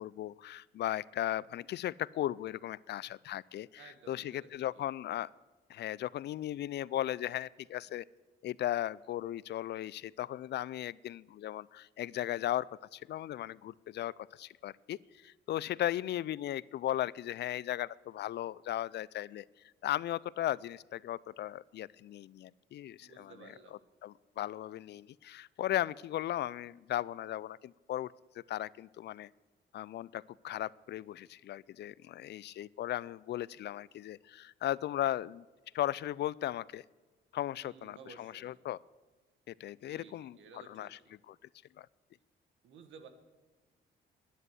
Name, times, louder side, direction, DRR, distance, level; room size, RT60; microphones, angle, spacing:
voice 1, 0.0-5.3 5.7-8.0 8.4-23.3 24.0-29.3 29.7-35.5 35.7-36.8 37.3-38.8 39.5-41.0 41.3-41.4 41.8-41.9, left 13 dB, 60° left, 22 dB, 0.4 m, -37 dB
voice 2, 3.8-4.5 4.7-4.9 23.0-23.8 37.6-38.6 39.8-41.1 42.6-43.1, right 5 dB, 75° right, 8 dB, 1.5 m, -55 dB
11.0 x 9.8 x 7.8 m, 1.3 s
cardioid pair, 90°, 20 cm